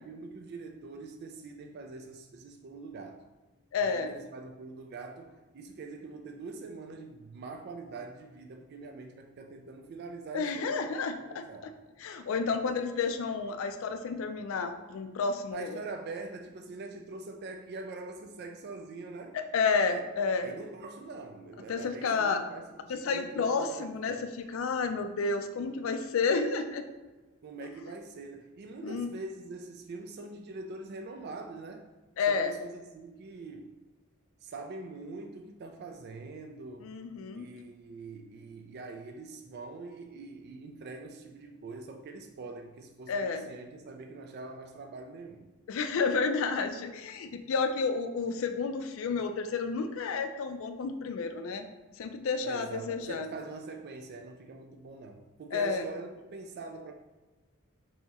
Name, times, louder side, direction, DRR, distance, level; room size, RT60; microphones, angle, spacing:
voice 1, 0.0-3.3 3.8-10.8 11.2-11.8 15.5-19.4 19.9-20.0 20.4-24.3 27.4-31.9 32.3-33.8 34.4-36.9 37.4-45.5 52.4-56.9, right 3 dB, 50° right, 4 dB, 0.3 m, -44 dB
voice 2, 3.7-4.1 10.3-11.7 12.0-15.8 19.3-20.5 21.7-22.4 22.9-26.8 28.8-29.1 32.2-32.5 36.8-37.5 43.1-43.5 45.7-51.7 52.0-53.3 55.5-55.9, left 4 dB, 70° left, 7 dB, 0.4 m, -31 dB
3.5 x 2.8 x 4.1 m, 1.2 s
head